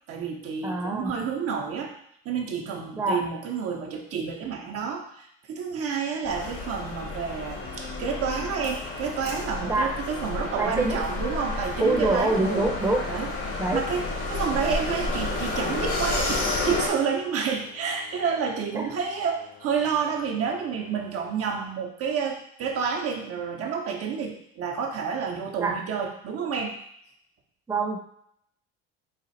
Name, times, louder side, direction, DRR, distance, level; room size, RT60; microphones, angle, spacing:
voice 1, 0.1-2.0 2.2-12.7 13.1-13.3 13.7-14.0 14.3-26.8, right 6 dB, 55° right, 2 dB, 0.8 m, -29 dB
voice 2, 0.6-1.1 3.0-3.2 9.7-9.9 10.6-11.0 11.8-13.0 13.6-13.8 18.8-18.9 25.6-25.8 27.7-28.0, right 2 dB, 10° right, 1 dB, 0.7 m, -25 dB
sound 1, 6.3-16.9, left 2 dB, 50° left, 1.2 m, -31 dB
sound 2, 11.7-21.7, left 3 dB, 85° left, 1.0 m, -51 dB
4.2 x 2.4 x 4.1 m, 0.70 s
supercardioid pair, 85°, 29 cm